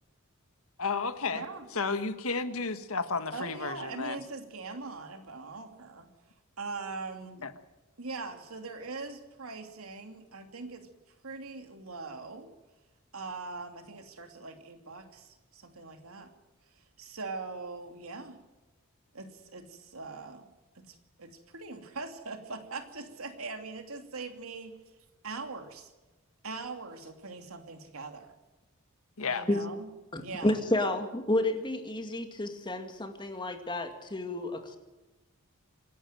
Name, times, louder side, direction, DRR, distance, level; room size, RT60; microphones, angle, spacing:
voice 1, 0.8-1.4 1.7-4.2 7.4-7.5 29.2-29.5, left 4 dB, 80° left, 10 dB, 1.5 m, -32 dB
voice 2, 1.3-1.7 3.3-6.1 6.6-7.4 8.0-10.9 11.2-12.5 13.1-16.3 17.0-18.4 19.1-20.5 20.8-24.8 25.2-25.9 26.4-28.3 29.3-29.9 30.2-30.5, right 3 dB, 85° right, 6 dB, 2.8 m, -41 dB
voice 3, 30.1-34.8, left 1 dB, 20° left, 6 dB, 2.1 m, -31 dB
26.5 x 11.0 x 9.1 m, 1.1 s
head